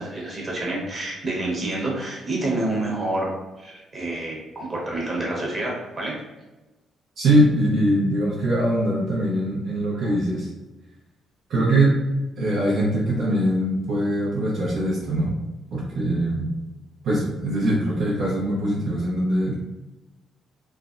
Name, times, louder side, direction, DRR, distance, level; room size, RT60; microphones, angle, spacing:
voice 1, 0.0-3.3 3.6-6.2 10.0-10.1, right 2 dB, 35° right, -3 dB, 1.0 m, -28 dB
voice 2, 7.2-10.5 11.5-12.0 12.4-15.3 15.7-16.5 17.0-19.5, right 1 dB, 70° right, -8 dB, 0.7 m, -22 dB
3.3 x 2.0 x 2.5 m, 1.1 s
cardioid pair, 90°, 0 cm